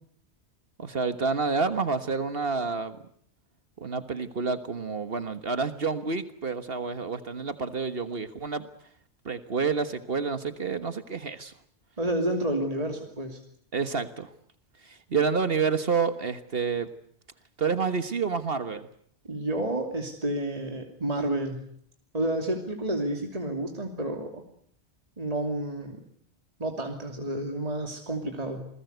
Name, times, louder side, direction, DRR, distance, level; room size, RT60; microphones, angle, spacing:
voice 1, 0.8-3.0 3.8-8.7 9.3-11.5 13.7-14.3 14.9-16.9 17.6-18.9, right 5 dB, 60° right, 10 dB, 1.6 m, -29 dB
voice 2, 12.0-13.4 19.3-21.6 22.1-24.4 25.2-26.0 26.6-28.7, right 1 dB, 35° right, 3 dB, 3.0 m, -30 dB
28.0 x 20.5 x 8.1 m, 0.65 s
omnidirectional pair, 1.1 m